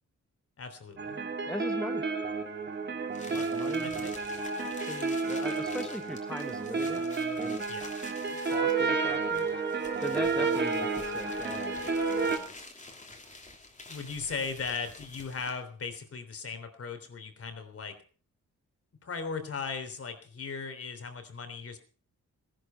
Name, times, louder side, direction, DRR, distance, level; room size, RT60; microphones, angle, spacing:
voice 1, 0.6-1.2 3.8-4.1 7.7-7.9 13.9-18.0 19.0-21.8, left 5 dB, 45° left, 8 dB, 3.3 m, -38 dB
sound 1, 1.0-12.4, right 4 dB, 35° right, 2.2 m, -31 dB
voice 2, 1.5-2.0 3.3-4.0 4.9-7.1 7.4-7.6 8.4-9.5 10.0-12.0 12.2-12.5, left 1 dB, ahead, 7 dB, 0.9 m, -40 dB
sound 2, 3.1-15.7, left 2 dB, 25° left, 2.9 m, -49 dB
18.5 x 11.5 x 5.7 m, 0.41 s
wide cardioid pair, 160°, 31 cm